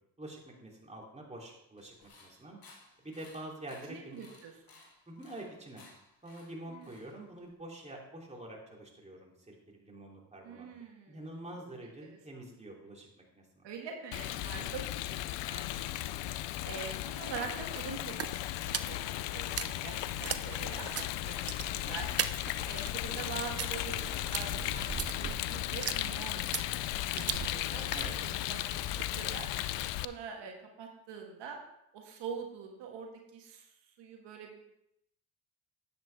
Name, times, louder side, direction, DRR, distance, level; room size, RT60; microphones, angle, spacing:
voice 1, 0.2-2.6 3.0-4.3 5.1-5.9 6.2-10.7 11.1-13.1 13.3-13.6 14.5-14.7 22.0-22.1 27.9-28.1, right 1 dB, 15° right, -2 dB, 3.1 m, -46 dB
sound 1, 1.8-7.5, left 3 dB, 55° left, 2.7 m, -59 dB
voice 2, 3.9-4.5 6.7-6.9 10.4-11.2 13.6-15.6 15.9-16.1 16.6-21.5 21.7-22.1 22.4-26.4 26.9-28.0 28.2-29.5 30.0-31.6 31.9-33.6 34.0-34.7, right 6 dB, 85° right, 2 dB, 1.5 m, -44 dB
Rain, 14.1-30.1, left 15 dB, 90° left, 0.5 m, -36 dB
sound 2, 16.2-29.2, right 8 dB, 35° right, 0.6 m, -41 dB
10.5 x 8.5 x 3.5 m, 0.79 s
supercardioid pair, 65°, 42 cm